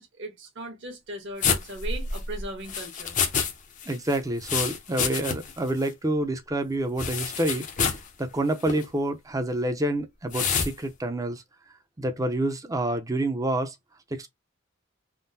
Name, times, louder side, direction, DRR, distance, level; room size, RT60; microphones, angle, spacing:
voice 1, 0.0-3.1, right 1 dB, 60° right, 1.3 m, -38 dB
sound 1, 1.4-3.5 3.8-5.6 5.9-6.0 7.0-8.1 8.6-8.8 10.3-10.7, left 6 dB, 40° left, 0.6 m, -28 dB
voice 2, 3.9-7.7 8.2-11.4 12.0-13.7 14.1-14.3, right 1 dB, 15° right, 0.5 m, -28 dB
3.6 x 2.1 x 2.7 m
head